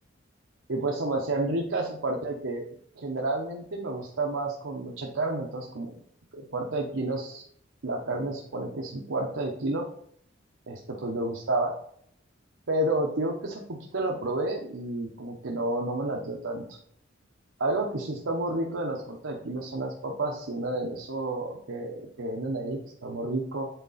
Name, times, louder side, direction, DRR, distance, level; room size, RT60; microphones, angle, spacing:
voice 1, 0.7-2.6 3.0-5.9 6.3-7.4 7.8-9.9 10.7-11.7 12.7-16.8 17.6-23.7, right 2 dB, 90° right, -1 dB, 0.9 m, -30 dB
7.9 x 4.0 x 4.1 m, 0.65 s
head